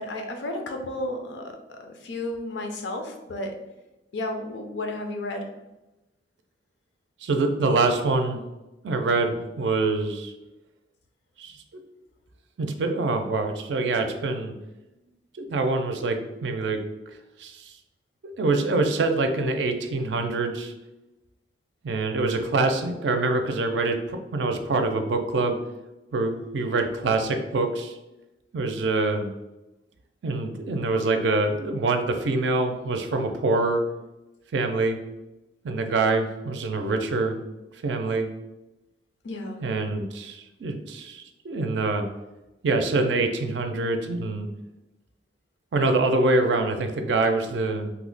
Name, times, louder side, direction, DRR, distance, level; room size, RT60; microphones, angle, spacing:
voice 1, 0.0-3.6 4.1-5.5 39.2-39.6, left 1 dB, 85° left, 4 dB, 0.5 m, -33 dB
voice 2, 7.2-8.4 8.8-10.3 11.4-11.6 12.6-14.5 15.4-16.8 17.4-17.7 18.4-20.7 21.8-25.6 26.1-27.9 28.5-29.3 30.2-33.8 34.5-35.0 35.6-37.4 37.8-38.3 39.6-42.0 42.6-44.5 45.7-47.9, right 3 dB, 75° right, 6 dB, 0.4 m, -25 dB
2.7 x 2.1 x 3.8 m, 0.99 s
head